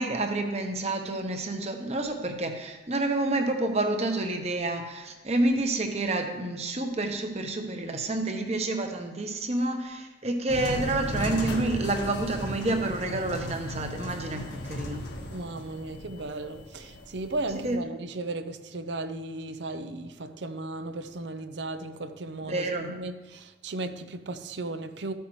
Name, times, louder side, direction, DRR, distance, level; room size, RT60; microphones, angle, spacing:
voice 1, 0.0-15.0 17.6-17.8 22.5-22.9, right 2 dB, 35° right, 1.0 m, -29 dB
sound 1, 10.5-17.7, left 1 dB, 80° left, 1.5 m, -36 dB
voice 2, 15.3-25.1, right 2 dB, 75° right, 0.7 m, -36 dB
13.5 x 8.0 x 3.2 m
head